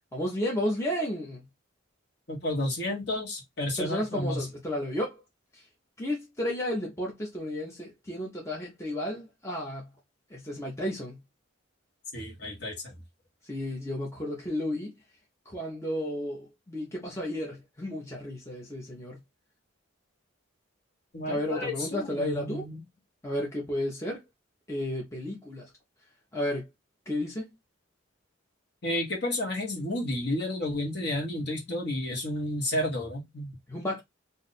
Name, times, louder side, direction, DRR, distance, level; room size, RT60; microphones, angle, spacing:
voice 1, 0.1-1.5 3.8-5.2 5.5-5.7 6.0-9.9 10.3-11.2 13.4-14.9 15.5-19.2 21.3-22.6 23.2-24.2 24.7-25.7 26.3-26.7 27.1-27.5 33.7-34.0, left 1 dB, 15° left, 0.7 m, -32 dB
voice 2, 2.3-4.4 12.1-12.9 21.1-22.8 28.8-33.5, left 1 dB, 55° left, 1.3 m, -31 dB
2.6 x 2.4 x 4.0 m
head